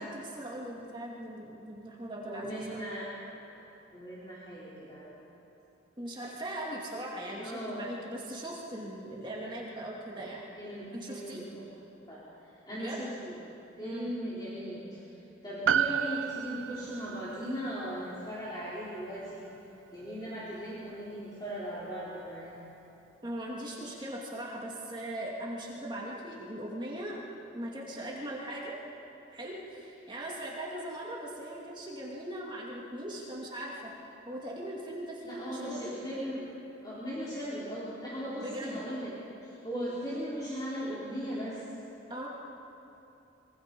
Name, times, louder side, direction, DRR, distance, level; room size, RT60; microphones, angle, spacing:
voice 1, 0.0-2.9 6.0-10.4 10.9-11.5 12.7-13.0 13.8-14.1 23.2-27.2 27.5-28.8 29.3-33.9 34.3-35.9 38.4-38.9 42.1-42.3, right 1 dB, 25° right, -3 dB, 2.5 m, -39 dB
voice 2, 2.3-3.1 3.5-3.6 3.9-5.2 7.4-7.8 10.2-10.3 10.6-11.7 12.1-13.4 13.8-15.2 15.4-19.5 19.9-22.6 35.2-36.4 36.8-39.1 39.4-41.6, equal, 20° left, -9 dB, 4.1 m, -38 dB
Piano, 15.7-20.3 20.5-20.6, right 9 dB, 85° right, 0.5 m, -33 dB
25.0 x 24.0 x 5.4 m, 2.9 s
head